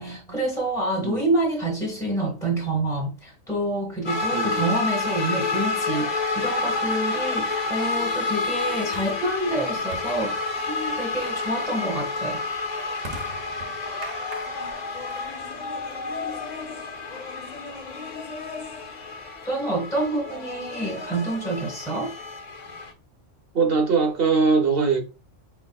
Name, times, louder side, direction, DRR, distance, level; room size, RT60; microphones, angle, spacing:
voice 1, 0.0-12.4 19.4-22.1, right 1 dB, 5° left, 1.1 m, -27 dB
voice 2, 1.0-1.3 4.3-4.6 23.5-25.0, right 4 dB, 50° right, 1.0 m, -21 dB
sound 1, 4.1-22.9, left 3 dB, 45° left, 0.6 m, -29 dB
sound 2, 6.2-16.6, right 2 dB, 85° right, 1.4 m, -45 dB
5.0 x 3.4 x 2.3 m
omnidirectional pair, 1.3 m